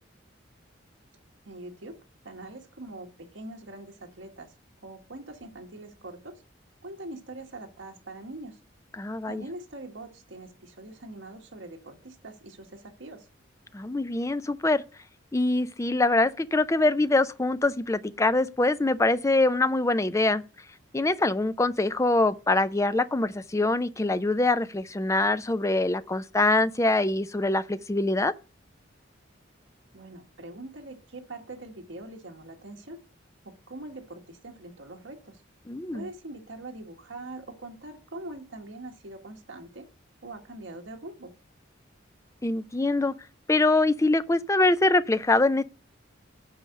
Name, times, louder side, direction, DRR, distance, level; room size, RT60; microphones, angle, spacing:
voice 1, 1.4-2.0 2.2-4.5 4.8-6.4 6.8-8.6 9.2-13.3 29.9-33.0 33.4-35.4 35.9-39.9 40.2-41.3, right 2 dB, 70° right, 1.7 m, -43 dB
voice 2, 9.0-9.4 13.7-14.8 15.3-20.4 20.9-28.3 35.7-36.1 42.4-43.1 43.5-45.6, left 2 dB, 15° left, 0.4 m, -24 dB
8.5 x 4.9 x 6.4 m
head